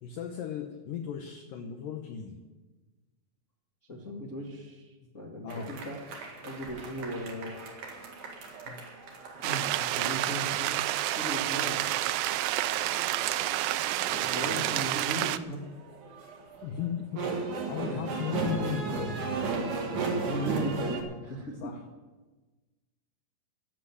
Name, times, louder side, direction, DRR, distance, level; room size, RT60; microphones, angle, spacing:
voice 1, 0.0-2.4 5.4-5.8 8.7-8.8 9.8-9.9 16.6-17.3 17.7-19.3 21.6-21.9, left 8 dB, 75° left, 5 dB, 2.3 m, -36 dB
voice 2, 3.9-4.8 5.1-6.0 6.4-7.5 9.4-9.7 9.9-10.8 11.1-11.8 14.1-15.6 17.8-18.2 19.9-21.7, equal, 40° left, -3 dB, 1.0 m, -37 dB
sound 1, 5.5-21.0, right 4 dB, 55° right, 3.2 m, -37 dB
sound 2, 9.4-15.4, right 14 dB, 80° right, 2.0 m, -29 dB
13.5 x 7.8 x 9.7 m, 1.2 s
omnidirectional pair, 4.5 m